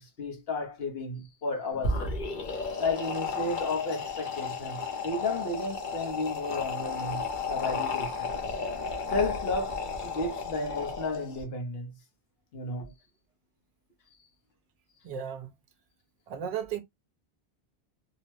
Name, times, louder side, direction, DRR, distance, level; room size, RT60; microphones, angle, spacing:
voice 1, 0.0-2.1 2.8-8.3 9.1-11.9 12.5-12.9, left 3 dB, 70° left, 1.0 m, -33 dB
sound 1, 1.7-11.4, left 4 dB, 50° left, 0.9 m, -33 dB
voice 2, 15.0-15.5 16.3-16.8, right 8 dB, 40° right, 0.7 m, -34 dB
2.8 x 2.0 x 3.0 m
omnidirectional pair, 1.1 m